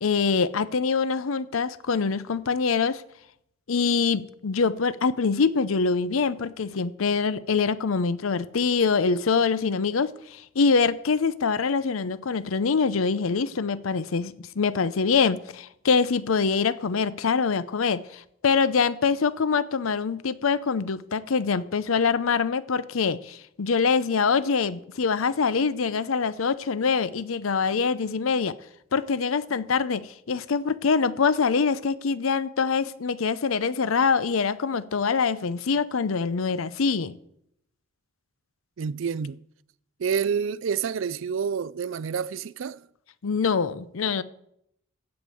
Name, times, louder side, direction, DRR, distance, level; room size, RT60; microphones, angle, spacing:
voice 1, 0.0-3.0 3.7-28.5 28.9-37.2 43.2-44.2, left 5 dB, 85° left, 0.6 m, -24 dB
voice 2, 38.8-39.4 40.0-42.8, right 6 dB, 65° right, 0.4 m, -28 dB
15.5 x 5.3 x 7.7 m
head